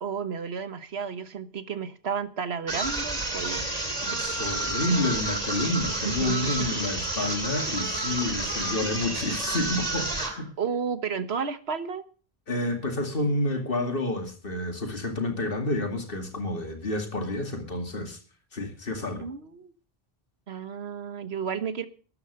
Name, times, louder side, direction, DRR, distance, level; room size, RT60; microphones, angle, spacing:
voice 1, 0.0-3.7 6.0-6.8 10.6-12.1 19.2-19.7 20.5-21.9, right 6 dB, 85° right, 1.5 m, -32 dB
sound 1, 2.7-10.4, right 2 dB, 40° right, 2.6 m, -30 dB
voice 2, 4.0-10.5 12.5-18.2 18.5-19.3, left 2 dB, 60° left, 2.7 m, -29 dB
13.0 x 9.7 x 6.8 m
omnidirectional pair, 1.0 m